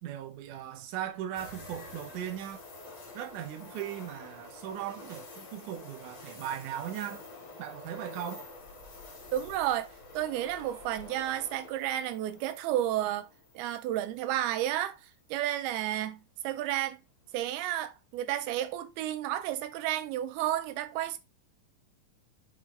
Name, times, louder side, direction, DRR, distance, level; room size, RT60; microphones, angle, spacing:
voice 1, 0.0-2.7 3.1-7.3 7.6-8.5, right 10 dB, 70° right, 2.2 m, -38 dB
sound 1, 1.3-14.4 14.8-14.9 17.3-17.7, left 2 dB, 35° left, 3.0 m, -48 dB
voice 2, 9.3-13.3 13.6-15.0 15.3-17.0 17.3-21.2, right 12 dB, 85° right, 2.6 m, -32 dB
7.4 x 4.7 x 3.6 m
omnidirectional pair, 4.4 m